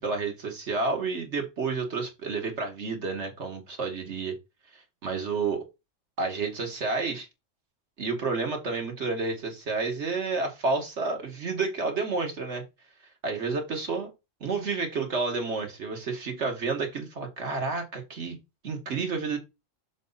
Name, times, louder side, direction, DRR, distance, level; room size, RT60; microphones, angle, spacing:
voice 1, 0.0-4.3 5.0-5.7 6.2-7.3 8.0-12.6 13.2-14.1 14.4-18.4 18.6-19.4, right 4 dB, 60° right, 1.9 m, -30 dB
6.5 x 4.0 x 4.0 m
omnidirectional pair, 1.3 m